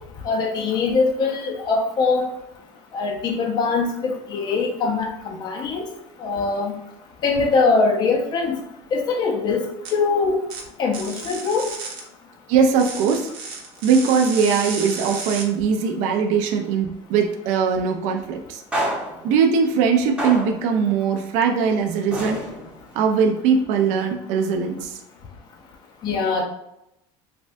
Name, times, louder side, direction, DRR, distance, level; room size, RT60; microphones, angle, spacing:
voice 1, 0.2-2.3 2.9-5.9 6.2-6.7 7.2-8.6 8.9-10.4 10.8-11.7 26.0-26.4, left 4 dB, 35° left, 1 dB, 0.4 m, -22 dB
sound 1, 9.8-9.9 10.5-10.6 10.9-12.0 12.8-15.4, right 4 dB, 85° right, 0.8 m, -33 dB
voice 2, 12.5-13.3 13.8-18.6 19.2-22.4 22.9-25.0, right 6 dB, 65° right, 3 dB, 0.4 m, -20 dB
sound 2, 17.5-17.7 18.7-19.4 20.2-20.7 22.1-22.9, right 1 dB, 10° right, 0.7 m, -28 dB
3.3 x 2.2 x 2.5 m, 0.84 s
cardioid pair, 140°, 13 cm